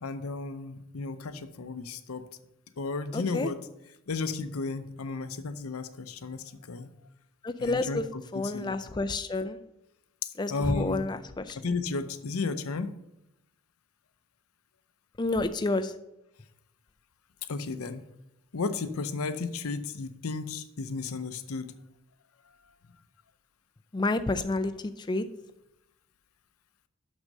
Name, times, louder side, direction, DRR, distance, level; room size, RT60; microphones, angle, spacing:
voice 1, 0.0-2.2 2.8-3.6 4.1-6.9 7.6-8.7 10.5-11.1 11.6-12.9 17.5-18.1 18.5-21.7, left 4 dB, 85° left, 12 dB, 0.6 m, -33 dB
voice 2, 3.1-3.5 7.4-8.1 8.3-9.6 10.4-11.6 15.2-15.9 23.9-25.3, left 2 dB, 20° left, 10 dB, 0.4 m, -29 dB
6.4 x 6.1 x 6.5 m, 0.87 s
head